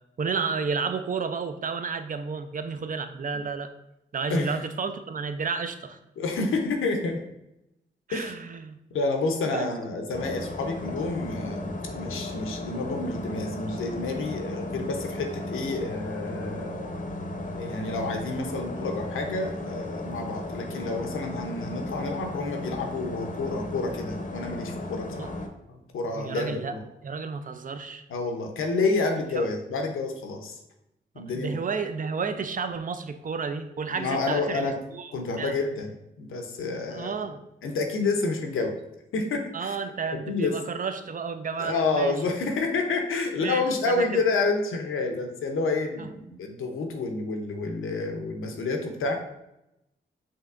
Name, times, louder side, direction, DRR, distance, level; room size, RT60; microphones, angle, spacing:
voice 1, 0.2-3.7 4.1-6.0 8.1-8.8 9.4-9.7 25.1-25.3 26.1-26.8 27.0-28.0 29.3-29.5 31.2-35.6 36.9-37.4 39.5-42.2 43.4-44.2 46.0-46.1, right 5 dB, 40° right, 9 dB, 0.5 m, -32 dB
voice 2, 6.2-7.2 8.1-8.3 8.9-17.0 17.5-25.4 25.7-26.8 28.1-30.6 31.2-31.6 33.9-34.7 35.1-35.9 36.2-37.1 37.6-38.7 39.1-39.8 40.3-40.5 41.6-49.2, left 3 dB, 80° left, 4 dB, 0.7 m, -29 dB
sound 1, 10.1-25.5, left 2 dB, 40° left, 0.7 m, -35 dB
5.4 x 2.9 x 2.4 m, 0.87 s
supercardioid pair, 45°, 21 cm